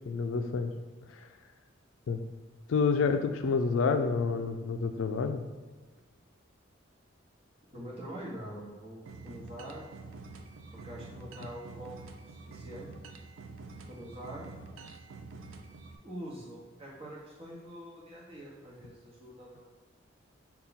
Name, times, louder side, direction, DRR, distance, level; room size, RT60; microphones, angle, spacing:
voice 1, 0.1-0.7 1.1-1.3 2.1-2.2 2.7-5.4, left 5 dB, 80° left, 7 dB, 0.4 m, -28 dB
voice 2, 7.7-9.9 10.7-12.9 13.9-14.5 16.0-19.7, right 1 dB, 30° right, -3 dB, 1.0 m, -45 dB
sound 1, 9.1-16.0, right 3 dB, 85° right, 0.4 m, -47 dB
5.5 x 2.3 x 3.9 m, 1.4 s
head